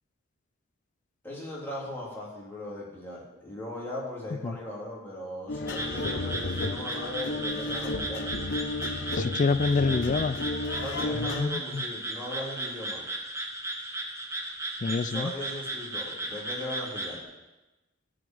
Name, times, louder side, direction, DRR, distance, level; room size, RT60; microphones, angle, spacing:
voice 1, 1.2-8.2 10.8-13.0 15.0-17.2, left 1 dB, 10° left, -6 dB, 3.3 m, -38 dB
sound 1, 5.5-11.4, left 2 dB, 65° left, 0.7 m, -33 dB
sound 2, 5.7-17.2, right 1 dB, 15° right, 1.2 m, -36 dB
voice 2, 9.1-10.4 11.2-11.8 14.8-15.3, left 4 dB, 40° left, 14 dB, 0.4 m, -27 dB
14.0 x 5.2 x 7.9 m, 1.1 s
head